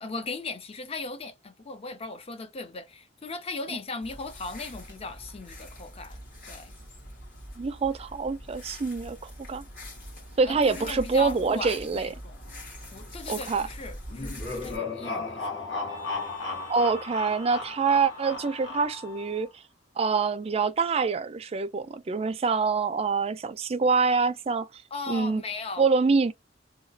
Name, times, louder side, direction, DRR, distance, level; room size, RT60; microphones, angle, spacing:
voice 1, 0.0-6.7 10.5-12.4 12.9-15.5 15.7-16.2 24.9-25.9, left 3 dB, 35° left, 0.5 m, -38 dB
sound 1, 4.0-14.8, left 1 dB, 50° left, 1.4 m, -43 dB
voice 2, 7.6-9.6 10.4-12.1 13.3-13.6 16.7-19.5 20.0-24.7 25.1-25.4 25.8-26.3, right 4 dB, 35° right, 0.4 m, -25 dB
sound 2, 14.1-19.2, left 3 dB, 70° left, 1.4 m, -35 dB
Wind instrument woodwind instrument, 15.9-19.5, left 1 dB, 10° left, 0.8 m, -48 dB
2.9 x 2.2 x 2.6 m
head